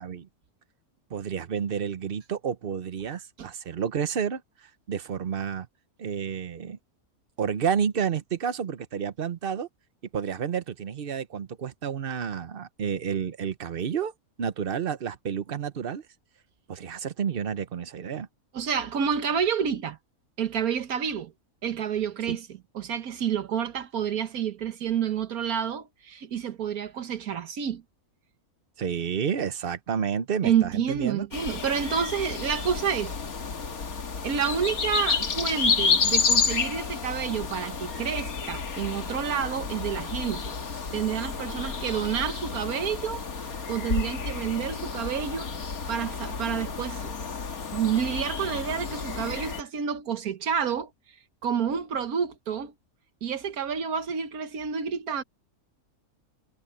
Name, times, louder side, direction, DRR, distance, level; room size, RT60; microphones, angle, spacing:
voice 1, 1.1-4.4 4.9-5.7 6.0-6.8 7.4-9.7 10.1-14.1 14.4-16.0 16.7-18.3 22.3-22.4 28.8-31.3, right 7 dB, 45° right, 0.9 m, -30 dB
voice 2, 18.5-20.0 20.4-21.3 21.6-22.5 22.7-27.8 30.4-33.1 34.2-40.5 40.9-45.5 45.9-47.1 47.7-50.9 51.4-52.7 53.2-55.2, right 8 dB, 80° right, 1.6 m, -29 dB
sound 1, 31.3-49.6, left 5 dB, 75° left, 2.3 m, -30 dB
omnidirectional pair, 1.5 m